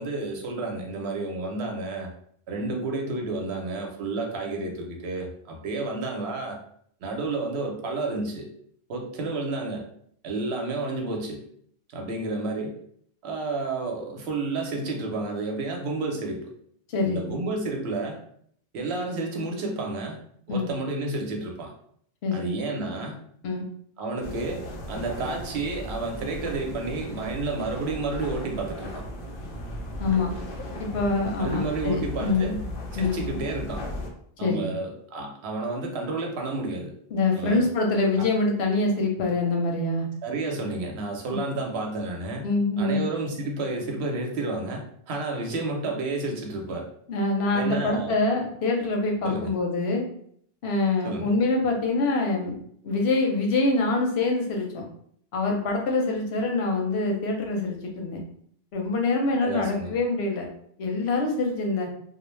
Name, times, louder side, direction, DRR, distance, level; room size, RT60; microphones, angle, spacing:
voice 1, 0.0-2.1 2.5-6.6 7.0-8.5 8.9-9.8 10.2-11.4 11.9-12.8 13.2-16.5 17.0-18.2 18.7-20.2 20.5-21.7 22.3-23.1 24.0-29.0 31.4-33.8 34.4-36.9 37.3-37.7 38.2-38.3 40.2-42.5 42.8-46.9 47.5-48.1 49.2-49.5 51.0-51.3 59.4-59.9, right 3 dB, 90° right, 1 dB, 0.9 m, -31 dB
voice 2, 16.9-17.3 20.5-20.7 22.2-22.5 23.4-23.7 30.0-30.3 30.8-32.5 33.0-33.2 34.4-34.7 37.1-40.1 41.3-41.4 42.4-43.1 47.1-50.0 50.6-52.6 52.8-54.8 55.3-58.2 58.7-60.5 60.8-61.9, left 3 dB, 85° left, 1 dB, 0.9 m, -25 dB
sound 1, 24.2-34.1, left 1 dB, 60° left, 0.7 m, -36 dB
2.4 x 2.0 x 3.1 m, 0.65 s
omnidirectional pair, 1.0 m